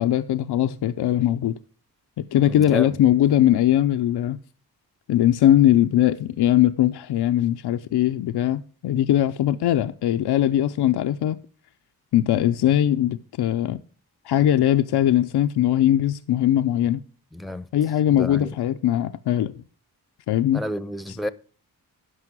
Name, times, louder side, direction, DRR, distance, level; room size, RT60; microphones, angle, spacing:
voice 1, 0.0-1.6 2.3-4.4 5.1-11.4 12.1-13.8 14.2-17.0 17.7-19.6 20.3-20.6, left 12 dB, 80° left, 0.5 m, -20 dB
voice 2, 2.5-2.9 17.3-17.7 18.2-18.5 20.5-21.3, left 1 dB, ahead, 0.7 m, -30 dB
11.0 x 5.6 x 6.0 m
cardioid pair, 60°, 39 cm